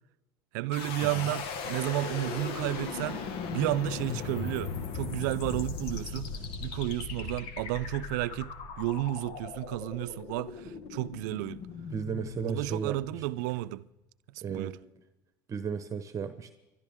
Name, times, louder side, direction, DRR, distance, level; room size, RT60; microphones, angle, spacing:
voice 1, 0.5-3.2 3.5-6.3 6.6-11.6 12.5-13.9 14.5-14.8, right 16 dB, 80° right, 0.5 m, -32 dB
sound 1, 0.7-13.7, left 5 dB, 65° left, 1.7 m, -38 dB
voice 2, 11.9-13.3 14.4-14.8 15.5-16.5, right 7 dB, 35° right, 1.1 m, -35 dB
29.0 x 12.5 x 3.6 m
supercardioid pair, 90°, 10 cm